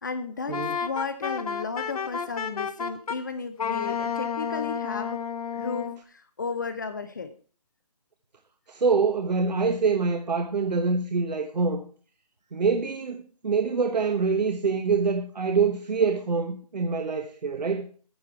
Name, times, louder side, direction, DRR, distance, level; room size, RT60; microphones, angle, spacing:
voice 1, 0.0-5.2 5.5-7.3, left 4 dB, 30° left, 0.5 m, -34 dB
Wind instrument woodwind instrument, 0.5-3.2 3.6-6.0, left 7 dB, 60° left, 1.2 m, -31 dB
voice 2, 8.7-11.8 12.5-17.9, right 5 dB, 90° right, 1.1 m, -25 dB
9.4 x 9.3 x 4.5 m
hypercardioid pair, 170°, 21 cm